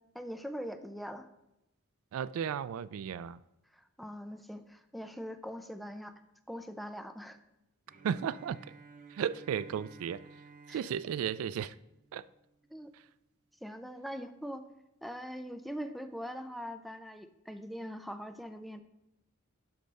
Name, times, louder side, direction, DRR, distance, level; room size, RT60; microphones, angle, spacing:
voice 1, 0.1-1.3 3.7-6.1 6.5-7.4 10.7-10.8 12.7-12.9 13.6-14.7 15.0-18.8, equal, ahead, 0.4 m, -42 dB
voice 2, 2.1-3.4 8.0-8.6 9.1-10.2 10.7-11.8 12.1-12.3, right 8 dB, 85° right, 0.3 m, -34 dB
Bowed string instrument, 7.9-12.8, right 4 dB, 40° right, 0.7 m, -55 dB
11.5 x 5.2 x 3.4 m
head